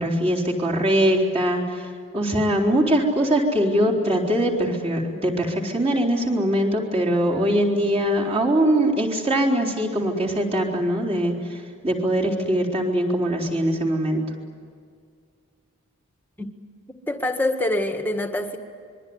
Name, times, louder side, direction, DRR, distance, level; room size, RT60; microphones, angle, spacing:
voice 1, 0.0-1.8 2.1-11.6 11.8-14.2, right 1 dB, 25° right, -3 dB, 4.1 m, -22 dB
voice 2, 17.1-18.6, left 1 dB, 10° left, 5 dB, 1.8 m, -25 dB
26.0 x 23.0 x 9.7 m, 2.2 s
head